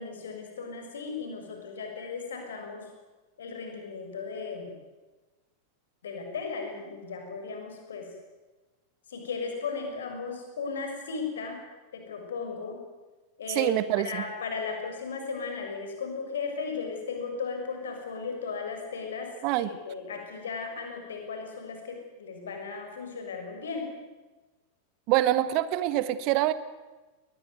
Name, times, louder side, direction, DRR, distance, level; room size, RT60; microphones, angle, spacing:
voice 1, 0.0-2.8 3.4-4.7 6.0-8.1 9.1-11.6 11.9-12.8 13.4-23.9, left 5 dB, 65° left, 3 dB, 6.3 m, -36 dB
voice 2, 13.5-14.2 19.4-19.7 25.1-26.5, right 14 dB, 45° right, 15 dB, 1.5 m, -25 dB
21.5 x 20.5 x 9.5 m, 1.2 s
figure-of-eight pair, 90°, 0 cm